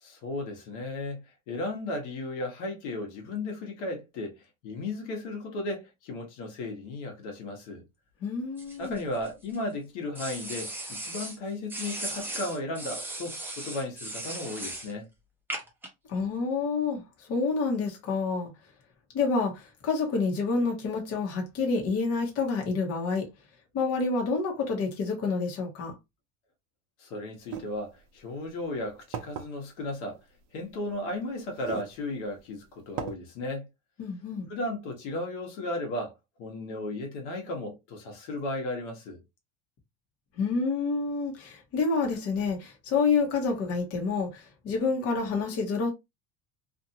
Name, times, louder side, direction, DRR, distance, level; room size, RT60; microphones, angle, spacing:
voice 1, 0.0-1.2 1.5-7.9 8.8-15.1 27.0-30.2 30.5-33.6 34.5-36.1 36.4-39.2, left 2 dB, 80° left, 1.2 m, -35 dB
voice 2, 8.2-9.0 16.1-18.5 19.1-23.3 23.7-26.0 34.0-34.5 40.4-45.9, left 4 dB, 40° left, 1.1 m, -28 dB
sound 1, 8.6-9.6 10.2-11.4 11.7-14.9 15.5-15.9, right 1 dB, 5° right, 0.6 m, -37 dB
sound 2, 27.4-27.6 28.5-28.6 29.1-29.5 30.7-30.8 31.5-31.9 32.4-32.5 33.0-33.1, right 8 dB, 55° right, 0.6 m, -36 dB
2.7 x 2.5 x 2.7 m
supercardioid pair, 135°, 36 cm